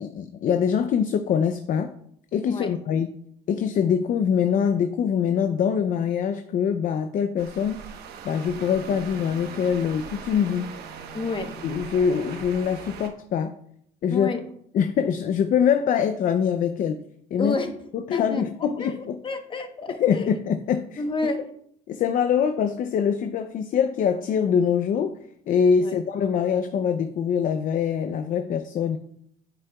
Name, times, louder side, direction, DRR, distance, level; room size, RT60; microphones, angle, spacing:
voice 1, 0.0-1.9 2.3-3.1 3.5-7.8 8.2-10.7 11.6-13.5 14.0-14.3 14.7-17.0 17.3-17.6 17.9-19.2 20.0-21.0 21.9-25.2 25.5-29.0, left 7 dB, 55° left, 8 dB, 0.5 m, -24 dB
sound 1, 7.4-13.1, right 6 dB, 70° right, 1.1 m, -40 dB
voice 2, 11.1-11.5 14.1-14.4 17.4-17.7 18.1-18.4 18.8-20.2 21.0-21.5 25.8-26.0, left 3 dB, 30° left, 7 dB, 1.0 m, -30 dB
9.5 x 7.8 x 2.3 m, 0.69 s
cardioid pair, 110°, 17 cm